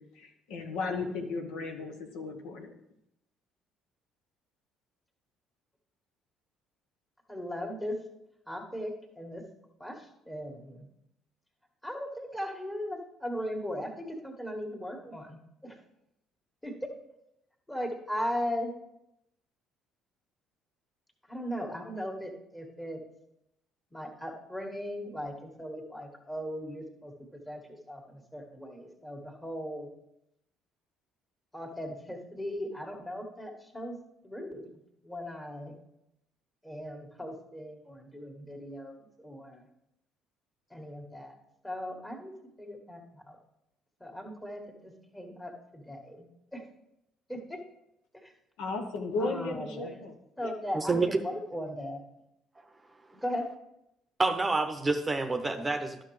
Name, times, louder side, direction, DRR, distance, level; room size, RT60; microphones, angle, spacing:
voice 1, 0.0-2.7 48.6-50.5, left 3 dB, 70° left, 4 dB, 0.9 m, -35 dB
voice 2, 7.3-8.0 8.5-9.4 9.8-10.0 10.3-10.9 11.8-15.8 16.6-16.7 17.7-18.7 21.3-23.0 23.9-29.9 31.5-34.0 34.2-34.8 35.0-35.8 36.6-39.6 40.7-41.4 41.6-42.3 42.6-43.4 44.0-46.3 46.5-46.6 47.3-47.6 49.2-49.9 50.4-52.0 53.1-53.5, equal, 10° left, 1 dB, 1.8 m, -38 dB
voice 3, 50.7-51.2 54.2-56.0, right 3 dB, 20° right, 6 dB, 0.8 m, -28 dB
12.0 x 6.2 x 3.2 m, 0.83 s
hypercardioid pair, 55°, 0 cm